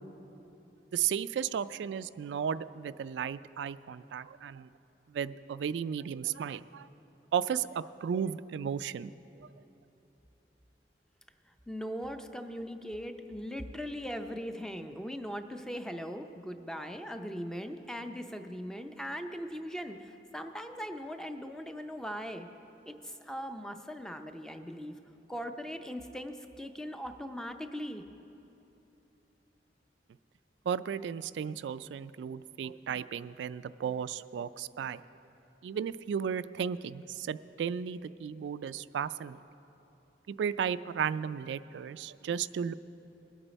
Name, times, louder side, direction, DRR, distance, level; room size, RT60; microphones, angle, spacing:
voice 1, 0.9-4.7 5.1-6.9 7.3-9.1 30.7-35.0 35.6-39.4 40.3-42.7, right 7 dB, 80° right, 14 dB, 0.3 m, -34 dB
voice 2, 11.5-22.5 22.8-24.9 25.3-28.1, equal, 5° left, 7 dB, 0.5 m, -40 dB
21.5 x 8.8 x 4.1 m, 3.0 s
head